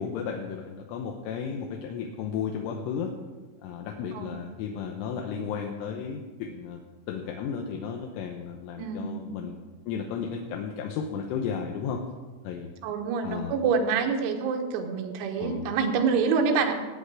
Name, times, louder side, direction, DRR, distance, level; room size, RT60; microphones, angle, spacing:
voice 1, 0.0-3.1 3.6-6.8 7.1-9.6 9.9-12.0 12.4-12.7 13.2-13.6 15.4-15.7, left 6 dB, 80° left, 2 dB, 3.3 m, -34 dB
voice 2, 8.8-9.3 12.8-16.8, right 5 dB, 90° right, 4 dB, 4.0 m, -26 dB
18.5 x 9.0 x 4.8 m, 1.3 s
omnidirectional pair, 6.0 m